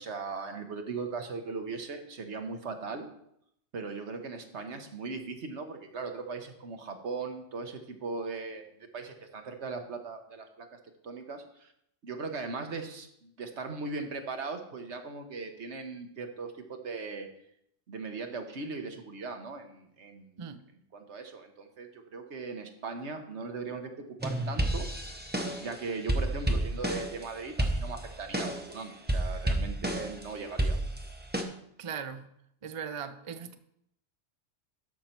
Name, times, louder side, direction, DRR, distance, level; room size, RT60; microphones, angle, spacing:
voice 1, 0.0-3.1 3.7-10.8 11.0-11.7 12.0-17.3 17.9-20.4 20.9-24.8 25.3-30.8, right 4 dB, 70° right, 5 dB, 1.4 m, -39 dB
sound 1, 24.2-25.7 26.1-27.2 27.6-28.7 29.1-30.2 30.6-31.4, right 1 dB, 10° right, 0.8 m, -30 dB
voice 2, 31.8-32.3 32.6-33.6, right 7 dB, 40° right, 10 dB, 0.5 m, -39 dB
12.5 x 5.5 x 4.5 m, 0.74 s
omnidirectional pair, 1.2 m